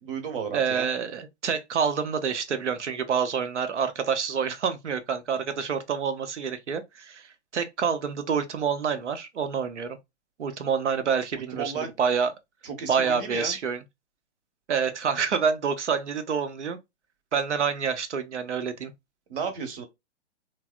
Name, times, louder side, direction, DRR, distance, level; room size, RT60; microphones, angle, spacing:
voice 1, 0.0-0.9 11.5-11.9 12.6-13.6 19.3-19.8, right 6 dB, 50° right, 1.0 m, -33 dB
voice 2, 0.5-10.0 10.4-12.3 12.9-13.8 14.7-16.8 17.3-18.9, right 6 dB, 80° right, 0.7 m, -27 dB
3.2 x 2.1 x 2.3 m
figure-of-eight pair, 125°, 35 cm